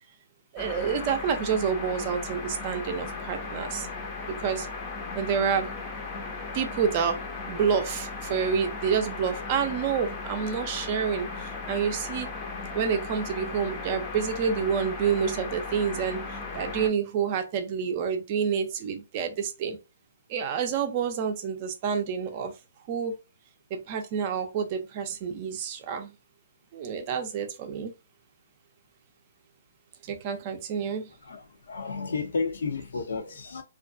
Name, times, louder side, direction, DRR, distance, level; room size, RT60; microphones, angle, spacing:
voice 1, 0.5-3.9 4.3-4.7 5.1-5.7 6.5-7.2 7.5-12.3 12.7-16.2 16.5-19.8 20.3-22.5 22.9-23.1 23.7-26.1 26.7-27.9 30.1-31.1, right 7 dB, 35° right, 0.5 m, -28 dB
sound 1, 0.6-16.9, left 3 dB, 25° left, 0.6 m, -36 dB
voice 2, 31.2-33.6, left 4 dB, 70° left, 0.7 m, -32 dB
2.5 x 2.2 x 2.5 m
hypercardioid pair, 140°, 0 cm